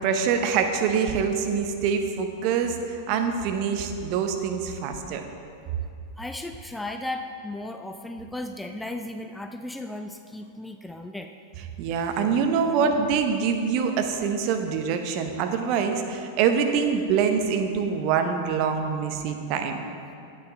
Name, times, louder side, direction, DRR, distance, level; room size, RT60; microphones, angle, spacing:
voice 1, 0.0-5.3 11.8-19.9, right 6 dB, 45° right, 6 dB, 0.8 m, -25 dB
voice 2, 6.2-11.3, left 1 dB, 5° left, 6 dB, 0.4 m, -35 dB
9.6 x 8.2 x 3.8 m, 2.5 s
figure-of-eight pair, 90°, 0 cm